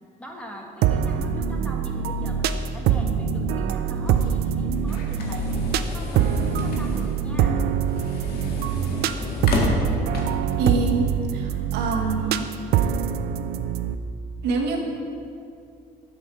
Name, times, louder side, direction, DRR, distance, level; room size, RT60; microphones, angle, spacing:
voice 1, 0.0-5.5 5.9-7.6, equal, 5° left, 0 dB, 1.5 m, -40 dB
sound 1, 0.8-13.9, right 8 dB, 70° right, 0.5 m, -24 dB
sound 2, 4.0-10.6, left 3 dB, 65° left, 1.7 m, -31 dB
voice 2, 10.6-12.4 14.4-14.8, right 3 dB, 90° right, 0 dB, 1.5 m, -26 dB
8.1 x 7.5 x 6.1 m, 2.5 s
cardioid pair, 110°, 17 cm